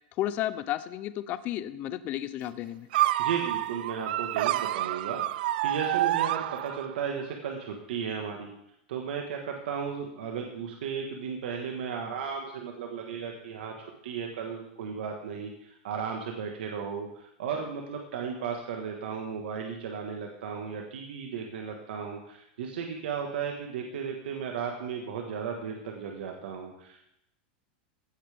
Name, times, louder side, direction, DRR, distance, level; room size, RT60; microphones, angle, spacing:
voice 1, 0.2-2.9, left 13 dB, 30° left, 14 dB, 0.5 m, -32 dB
sound 1, 2.9-7.1, right 14 dB, 65° right, 0.4 m, -28 dB
voice 2, 3.2-8.5 8.9-27.0, right 6 dB, 85° right, 2 dB, 1.5 m, -35 dB
15.5 x 8.5 x 3.5 m, 0.82 s
supercardioid pair, 160°, 5 cm